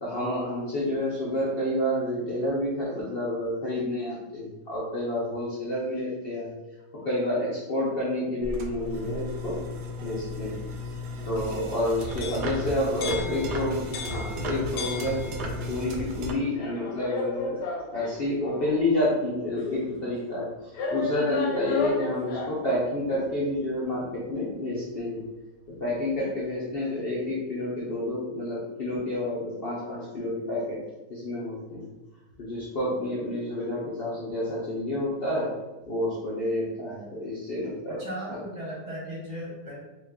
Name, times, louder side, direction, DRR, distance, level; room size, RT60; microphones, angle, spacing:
voice 1, 0.0-6.5 7.0-9.6 10.0-10.6 11.3-15.2 15.7-17.6 17.9-25.2 25.8-30.8 31.1-31.9 32.4-35.5 35.9-38.0, left 1 dB, 60° left, -7 dB, 0.6 m, -29 dB
sound 1, 8.4-16.3, equal, 75° right, 1.1 m, -34 dB
sound 2, 12.1-15.7 16.5-18.8 19.6-19.7 20.7-22.7, left 2 dB, 75° left, 1.1 m, -34 dB
voice 2, 14.9-15.2 37.9-39.8, equal, 15° right, -6 dB, 0.9 m, -37 dB
2.9 x 2.4 x 3.5 m, 1.1 s
omnidirectional pair, 1.9 m